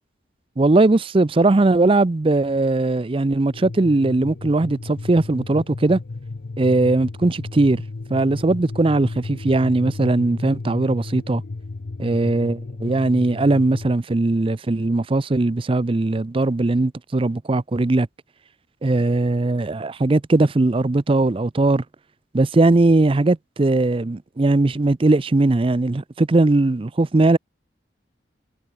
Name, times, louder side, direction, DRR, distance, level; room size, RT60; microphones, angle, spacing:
voice 1, 0.6-6.0 6.6-7.8 8.1-11.4 12.0-18.1 18.8-21.8 22.3-27.4, right 2 dB, 30° right, 0.5 m, -19 dB
sound 1, 3.5-13.9, left 3 dB, 60° left, 0.6 m, -34 dB
head